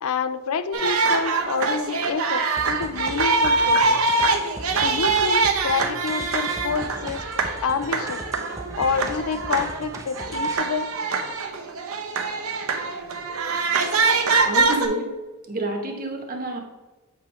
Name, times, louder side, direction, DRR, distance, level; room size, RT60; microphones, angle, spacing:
voice 1, 0.0-4.0 4.8-8.2 8.8-10.9, left 5 dB, 80° left, 12 dB, 0.4 m, -28 dB
sound 1, 0.7-14.9, right 3 dB, 85° right, 0.8 m, -24 dB
sound 2, 2.6-10.6, right 2 dB, 15° right, 0.5 m, -39 dB
voice 2, 14.4-15.1 15.5-16.6, right 2 dB, 45° right, 3 dB, 1.0 m, -28 dB
7.7 x 2.9 x 4.9 m, 1.2 s
head